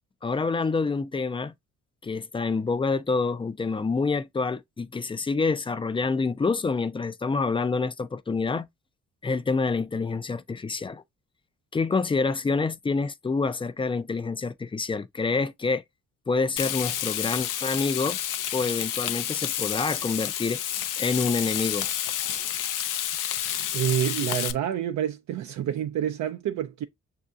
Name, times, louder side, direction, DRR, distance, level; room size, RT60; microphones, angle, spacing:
voice 1, 0.2-1.5 2.0-8.7 9.2-11.0 11.7-15.8 16.3-18.2 18.5-20.6 21.0-21.9, left 4 dB, 15° left, 0.4 m, -27 dB
Frying (food), 16.6-24.5, left 11 dB, 85° left, 0.6 m, -30 dB
voice 2, 23.7-26.8, right 10 dB, 65° right, 0.5 m, -28 dB
6.4 x 2.7 x 2.3 m
cardioid pair, 110°, 31 cm